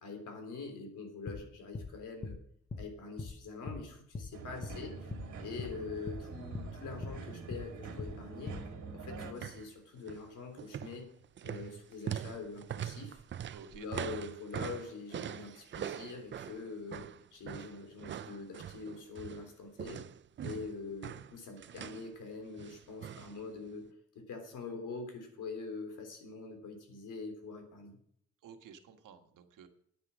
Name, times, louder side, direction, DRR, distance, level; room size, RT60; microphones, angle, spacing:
voice 1, 0.0-2.4 2.8-5.1 5.4-8.5 8.9-11.1 11.4-13.2 13.7-17.1 17.3-20.0 20.4-23.9 24.1-28.0, left 4 dB, 75° left, 5 dB, 3.4 m, -44 dB
sound 1, 1.3-1.4 1.7-1.9 2.2-2.4 2.7-2.9 3.2-3.3 3.7-3.8 4.1-4.3 4.6-4.8 5.1-5.3 5.6-5.7 6.1-6.2 6.5-6.7 7.0-7.2 7.5-7.7 8.0-8.1 8.5-8.6, left 3 dB, 25° left, 0.9 m, -41 dB
sound 2, 4.3-9.3, right 5 dB, 70° right, 2.2 m, -45 dB
sound 3, 9.3-9.7 10.0-10.3 10.6-19.5 19.8-22.1 22.6-23.4 23.7-23.8, right 9 dB, 40° right, 0.4 m, -42 dB
voice 2, 13.5-13.9 28.4-29.7, right 7 dB, 85° right, 6 dB, 1.5 m, -53 dB
9.8 x 9.5 x 6.2 m, 0.67 s
cardioid pair, 125°, 31 cm